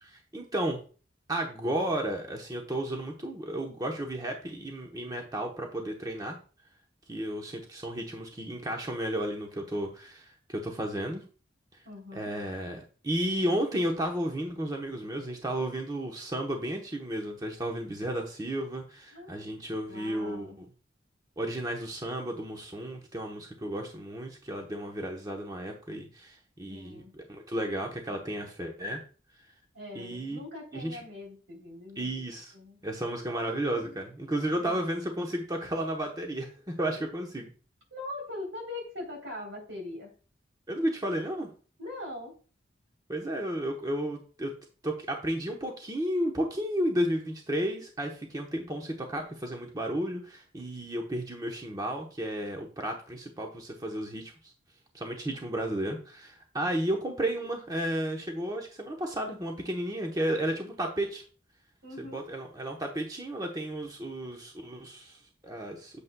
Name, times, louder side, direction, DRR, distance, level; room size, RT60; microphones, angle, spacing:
voice 1, 0.0-0.8 1.3-6.4 7.1-11.2 11.7-11.8 12.1-20.6 21.4-29.0 29.9-30.4 30.7-31.0 32.0-32.5 32.8-37.5 40.7-41.5 43.1-44.5 44.8-54.3 54.9-61.2 62.0-66.0, right 1 dB, 20° right, 1 dB, 1.0 m, -33 dB
voice 2, 11.8-12.4 19.1-20.6 26.7-27.1 29.7-32.2 32.5-32.8 33.3-34.0 34.6-34.8 37.9-40.1 41.8-42.4 61.8-62.3, left 2 dB, 75° right, 1 dB, 3.6 m, -42 dB
8.4 x 7.9 x 2.3 m, 0.38 s
head